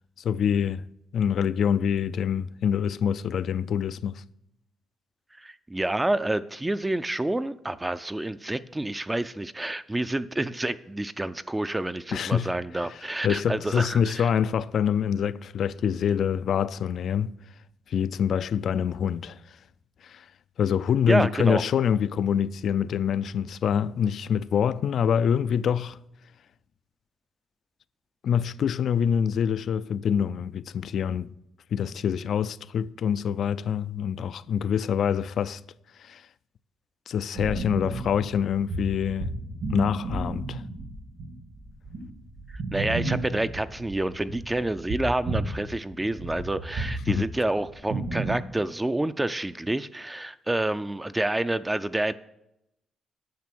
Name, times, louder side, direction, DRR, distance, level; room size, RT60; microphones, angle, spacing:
voice 1, 0.2-0.8 1.1-4.2 12.1-12.5 12.9-13.0 13.2-17.3 17.9-19.4 20.0-20.3 20.6-26.0 28.2-31.3 31.7-35.6 36.0-36.2 37.1-39.3 39.7-40.6 47.1-47.3, left 8 dB, 65° left, 0.3 m, -25 dB
voice 2, 5.4-14.3 21.1-21.6 42.7-52.1, right 1 dB, 15° right, 0.4 m, -28 dB
sound 1, 37.3-45.6 45.9-48.4, right 2 dB, 75° right, 2.3 m, -33 dB
9.4 x 6.6 x 6.0 m
cardioid pair, 90°, 0 cm